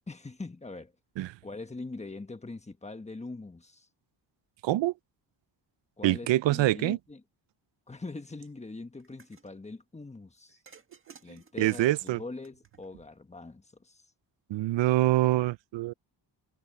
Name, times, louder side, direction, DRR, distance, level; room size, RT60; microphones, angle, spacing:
voice 1, 0.1-0.9 1.4-3.9 6.0-7.2 7.9-10.6 11.2-14.1, left 3 dB, 15° left, 1.3 m, -42 dB
voice 2, 4.6-4.9 6.0-7.0 11.6-12.2 14.5-15.9, right 16 dB, 85° right, 0.6 m, -25 dB
sound 1, 9.0-9.5 10.7-13.2, right 4 dB, 30° right, 1.9 m, -57 dB
cardioid pair, 115°, 43 cm